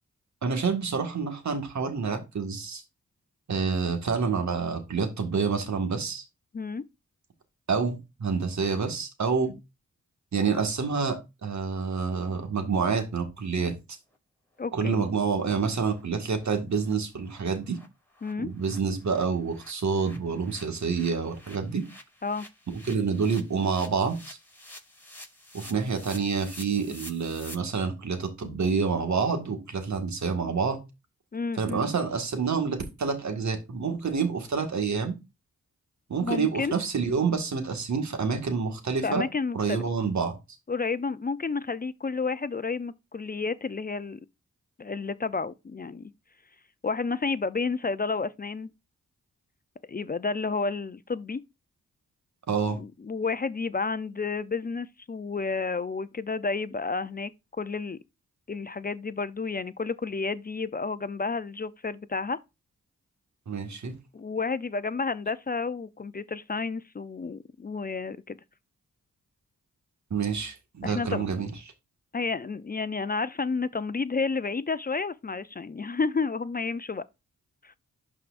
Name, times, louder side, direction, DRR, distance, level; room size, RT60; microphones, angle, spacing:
voice 1, 0.4-2.8 3.5-6.2 7.7-9.5 10.3-13.7 14.7-17.8 18.4-21.9 22.7-24.4 25.5-30.8 31.6-35.1 36.1-39.2 39.5-40.4 52.5-52.8 63.5-63.9 70.1-71.5, right 5 dB, 65° right, 1.8 m, -28 dB
voice 2, 14.6-15.0 18.2-18.5 22.2-22.5 31.3-31.8 36.2-36.7 39.0-39.8 40.7-44.2 44.8-46.1 46.8-48.7 49.9-51.4 52.7-57.3 57.6-58.0 58.5-62.4 64.1-68.4 70.8-71.3 72.1-77.0 77.6-77.7, left 4 dB, 30° left, 0.5 m, -31 dB
sound 1, 14.6-14.7 15.0-15.1 15.4-15.6 15.9-16.0 16.3-16.5 16.8-16.9 17.3-17.4 17.6-27.5, left 1 dB, 5° left, 5.0 m, -49 dB
11.5 x 4.8 x 2.6 m
cardioid pair, 45°, 31 cm